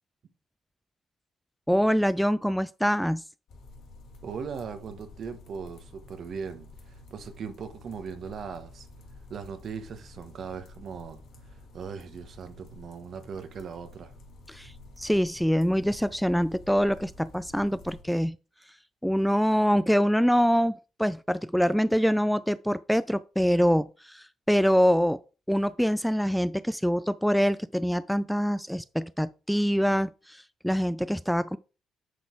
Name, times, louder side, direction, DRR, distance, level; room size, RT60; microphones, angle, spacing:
voice 1, 1.7-3.2 14.5-14.7 15.0-18.4 19.0-20.7 21.0-25.2 25.5-31.6, equal, ahead, 0.3 m, -25 dB
sound 1, 3.5-18.0, left 2 dB, 70° left, 2.5 m, -50 dB
voice 2, 4.2-8.9 9.3-11.2 11.5-14.1, right 6 dB, 60° right, 1.3 m, -39 dB
10.0 x 4.0 x 4.7 m
cardioid pair, 90°, 0 cm